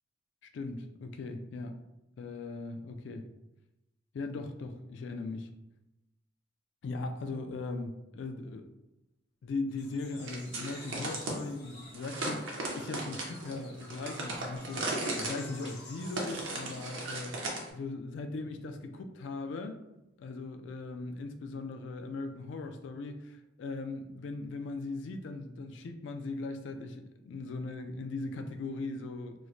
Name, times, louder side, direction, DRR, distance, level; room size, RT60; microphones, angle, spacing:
voice 1, 0.5-1.8 2.2-3.2 4.1-5.5 6.8-8.6 9.4-19.8 20.2-29.3, left 3 dB, 75° left, 7 dB, 0.3 m, -39 dB
sound 1, 9.7-16.9, left 2 dB, 55° left, 0.9 m, -51 dB
sound 2, 10.2-11.4 11.9-17.7, right 2 dB, 85° right, 0.7 m, -37 dB
3.0 x 2.1 x 3.8 m, 0.94 s
head